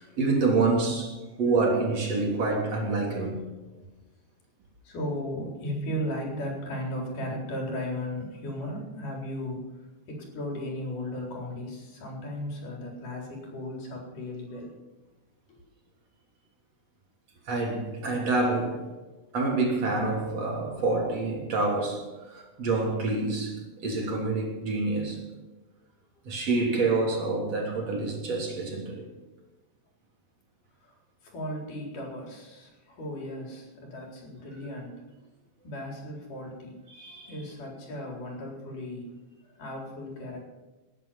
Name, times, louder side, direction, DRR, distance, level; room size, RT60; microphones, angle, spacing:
voice 1, 0.0-3.5 17.5-19.0 19.3-25.2 26.2-29.1 36.9-37.3, right 3 dB, 55° right, 4.3 m, -27 dB
voice 2, 4.8-14.7 15.5-15.6 30.8-35.0 35.6-36.8 37.3-39.1 39.5-40.4, left 1 dB, 80° left, 5.8 m, -36 dB
19.5 x 10.0 x 5.8 m
omnidirectional pair, 3.6 m